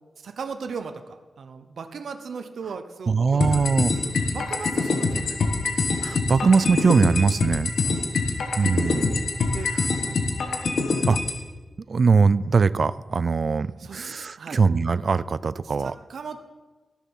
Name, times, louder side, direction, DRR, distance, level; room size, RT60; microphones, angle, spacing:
voice 1, 0.2-3.9 4.3-5.4 7.8-8.2 9.5-9.7 10.0-10.2 13.8-14.1 14.4-14.6 15.6-16.4, right 5 dB, 75° right, 8 dB, 0.8 m, -37 dB
voice 2, 3.1-3.9 6.0-7.7 8.6-9.3 11.1-11.2 11.9-16.0, right 5 dB, 55° right, 17 dB, 0.3 m, -21 dB
sound 1, 3.4-11.4, left 4 dB, 80° left, 1.4 m, -25 dB
13.5 x 7.1 x 5.5 m, 1.2 s
wide cardioid pair, 100°, 0 cm